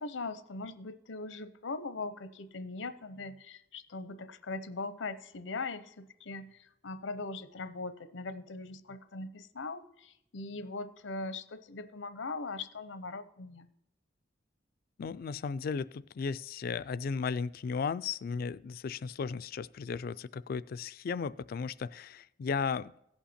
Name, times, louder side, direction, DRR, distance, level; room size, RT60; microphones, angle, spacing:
voice 1, 0.0-13.7, left 3 dB, 85° left, 12 dB, 0.7 m, -40 dB
voice 2, 15.0-22.9, left 5 dB, 50° left, 16 dB, 0.3 m, -35 dB
16.0 x 5.7 x 4.2 m, 0.80 s
head